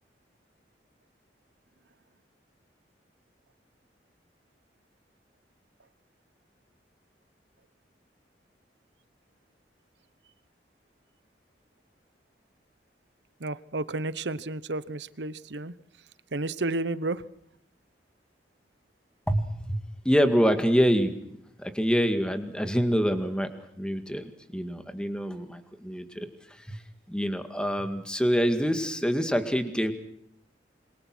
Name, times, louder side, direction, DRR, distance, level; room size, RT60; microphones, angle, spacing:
voice 1, 13.4-15.7 16.3-17.2, right 2 dB, 75° right, 16 dB, 1.0 m, -31 dB
voice 2, 19.3-21.1 21.6-23.5 23.8-26.3 26.7-26.8 27.1-29.9, equal, 5° left, 8 dB, 2.1 m, -26 dB
27.5 x 23.0 x 6.2 m, 0.74 s
head